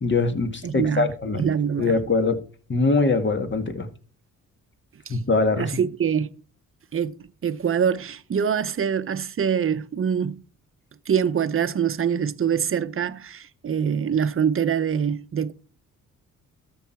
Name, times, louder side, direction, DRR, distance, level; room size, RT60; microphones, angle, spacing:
voice 1, 0.0-1.5 1.8-2.4 2.7-3.9 5.1-5.7, left 3 dB, 35° left, 1.9 m, -22 dB
voice 2, 0.6-2.0 5.1-5.2 5.6-6.3 6.9-10.4 11.1-15.5, right 7 dB, 40° right, 0.7 m, -24 dB
13.0 x 6.3 x 4.6 m
cardioid pair, 80°, 32 cm